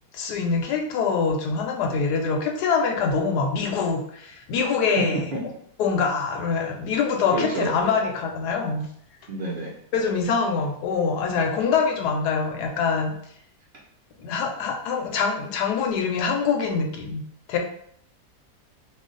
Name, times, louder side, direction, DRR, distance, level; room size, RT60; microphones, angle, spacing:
voice 1, 0.1-5.2 5.8-8.9 9.9-13.1 14.2-17.2 17.5-17.6, left 5 dB, 75° left, 2 dB, 1.2 m, -24 dB
voice 2, 7.3-7.7 9.3-9.7, right 2 dB, 75° right, -4 dB, 0.4 m, -28 dB
3.1 x 2.3 x 3.8 m, 0.66 s
omnidirectional pair, 1.8 m